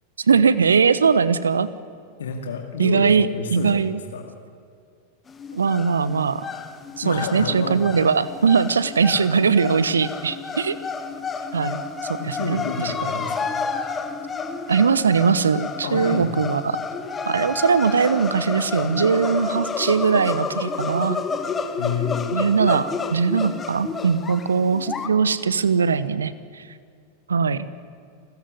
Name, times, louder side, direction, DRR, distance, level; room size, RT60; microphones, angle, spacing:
voice 1, 0.2-1.7 2.8-4.0 5.5-6.5 7.0-10.8 11.5-11.8 12.1-13.1 14.7-16.8 17.2-21.2 22.3-26.6 27.3-27.6, right 5 dB, 70° right, 16 dB, 1.0 m, -20 dB
voice 2, 2.2-4.3 7.0-7.9 12.2-13.5 15.8-16.4 21.8-22.3, left 5 dB, 65° left, 4 dB, 2.3 m, -29 dB
sound 1, 5.3-25.1, left 5 dB, 20° left, 1.8 m, -30 dB
28.5 x 14.5 x 9.6 m, 2.3 s
figure-of-eight pair, 90°, 0 cm